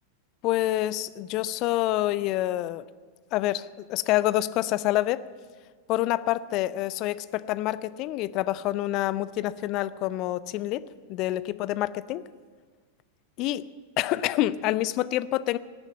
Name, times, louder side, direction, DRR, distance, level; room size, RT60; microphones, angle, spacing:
voice 1, 0.4-2.8 3.3-5.2 5.9-10.8 11.1-12.2 13.4-13.6 14.0-15.6, left 15 dB, 40° left, 16 dB, 0.5 m, -27 dB
18.0 x 7.3 x 8.7 m, 1.5 s
figure-of-eight pair, 90°, 0 cm